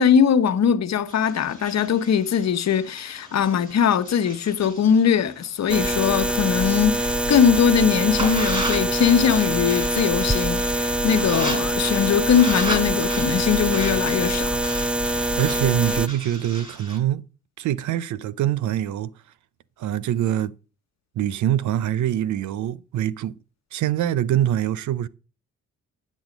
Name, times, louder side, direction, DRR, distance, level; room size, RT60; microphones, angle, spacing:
voice 1, 0.0-14.6, left 7 dB, 60° left, 1.1 m, -20 dB
sound 1, 1.1-6.7 7.1-17.0, right 2 dB, 20° right, 4.9 m, -36 dB
sound 2, 5.7-16.1, right 1 dB, 5° right, 0.6 m, -24 dB
voice 2, 15.4-17.2 17.6-19.1 19.8-20.5 21.2-23.4 23.7-25.1, right 11 dB, 70° right, 0.7 m, -24 dB
9.9 x 6.3 x 5.2 m
supercardioid pair, 60°, 30 cm